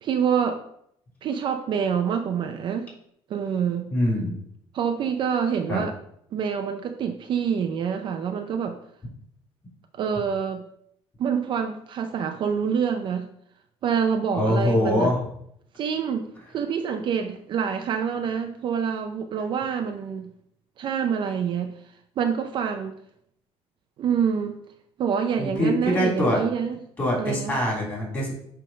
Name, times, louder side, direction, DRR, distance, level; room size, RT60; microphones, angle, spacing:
voice 1, 0.0-0.6 1.2-2.9 3.3-3.9 4.7-5.9 6.3-8.8 9.9-10.7 11.2-13.3 13.8-15.1 15.7-16.3 16.5-20.3 20.8-21.7 22.2-22.9 24.0-24.6 25.0-26.8 27.2-27.5, right 7 dB, 45° right, 5 dB, 0.5 m, -26 dB
voice 2, 3.9-4.4 5.7-5.8 14.3-15.2 25.4-26.4 27.0-28.3, left 1 dB, 20° left, -4 dB, 3.1 m, -23 dB
8.5 x 3.5 x 5.2 m, 0.70 s
cardioid pair, 175°, 11 cm